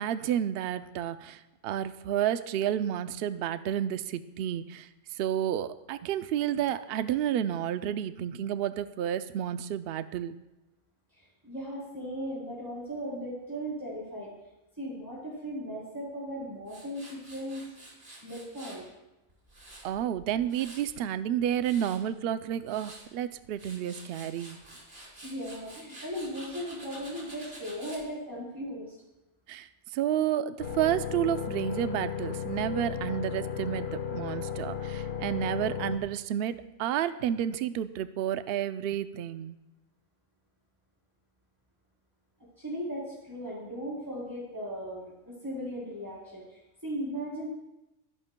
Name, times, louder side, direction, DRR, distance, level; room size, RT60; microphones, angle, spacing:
voice 1, 0.0-10.4 19.8-24.6 29.5-39.6, right 10 dB, 60° right, 12 dB, 0.6 m, -31 dB
voice 2, 11.1-14.3 14.8-17.7 18.2-18.9 25.2-28.9 42.6-47.5, equal, 15° right, -8 dB, 3.6 m, -37 dB
Tools, 16.7-18.8 19.3-21.0 21.4-22.0 22.5-23.1 23.4-28.0, right 1 dB, 45° right, 3.3 m, -49 dB
sound 1, 30.6-36.0, left 7 dB, 50° left, 1.2 m, -35 dB
23.5 x 11.0 x 2.2 m, 0.97 s
omnidirectional pair, 1.4 m